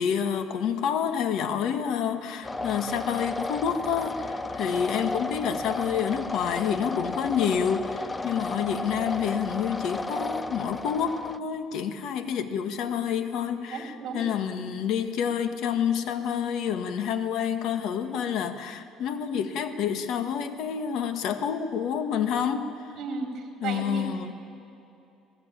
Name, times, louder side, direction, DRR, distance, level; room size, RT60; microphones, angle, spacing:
voice 1, 0.0-22.7 23.6-24.3, left 8 dB, 65° left, 9 dB, 1.6 m, -28 dB
sound 1, 2.4-11.4, left 2 dB, 15° left, 0.6 m, -33 dB
voice 2, 13.7-14.3 23.0-24.1, right 4 dB, 50° right, 2 dB, 4.4 m, -34 dB
26.5 x 18.5 x 9.0 m, 2.8 s
cardioid pair, 135°, 0 cm